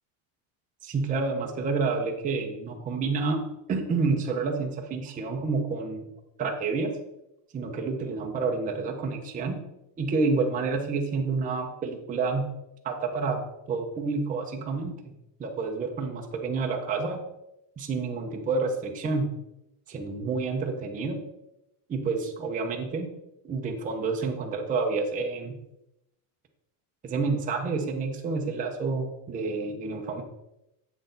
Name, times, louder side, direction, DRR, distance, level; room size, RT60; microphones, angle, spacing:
voice 1, 0.8-3.4 3.7-6.1 6.4-6.9 7.5-9.6 10.0-12.5 12.8-13.4 13.7-15.0 15.4-17.2 17.8-19.3 19.9-21.2 21.9-23.1 23.4-25.6 27.0-30.2, right 4 dB, 15° right, 1 dB, 0.6 m, -29 dB
8.0 x 6.2 x 3.9 m, 0.86 s
cardioid pair, 175°, 49 cm